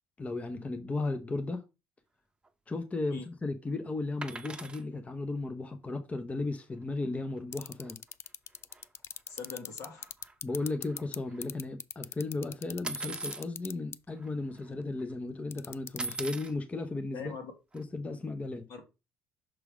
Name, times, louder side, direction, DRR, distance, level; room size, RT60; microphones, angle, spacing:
voice 1, 0.2-1.6 2.7-8.0 10.4-17.3 17.7-18.7, left 2 dB, 20° left, 0.8 m, -35 dB
sound 1, 4.2-4.8 7.0-7.1 7.4-7.6 7.8-7.9 8.7-8.8 9.3-9.7 10.0-11.5 12.8-13.4 14.2-14.3 14.6-15.0 16.0-16.5 17.7-17.8, right 3 dB, 15° right, 0.9 m, -40 dB
sound 2, 7.5-11.2 11.4-13.9 15.5-16.2, left 8 dB, 40° left, 0.4 m, -38 dB
voice 2, 9.3-10.1 17.1-17.5 18.7-18.8, left 5 dB, 65° left, 2.2 m, -42 dB
6.1 x 3.3 x 4.8 m
hypercardioid pair, 70°, 6 cm